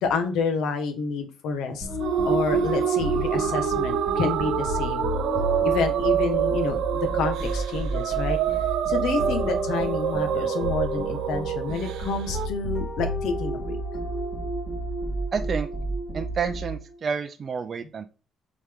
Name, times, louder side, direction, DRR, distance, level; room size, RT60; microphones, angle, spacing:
voice 1, 0.0-1.9 2.2-5.1 5.6-8.6 8.9-13.8, left 4 dB, 75° left, 6 dB, 1.4 m, -29 dB
sound 1, 1.8-17.0, equal, 35° left, 2.4 m, -31 dB
sound 2, 2.0-12.5, right 9 dB, 75° right, 0.9 m, -26 dB
voice 2, 15.3-15.7 16.1-18.1, right 6 dB, 30° right, 7 dB, 0.4 m, -29 dB
8.2 x 4.2 x 3.6 m, 0.34 s
cardioid pair, 175°, 0 cm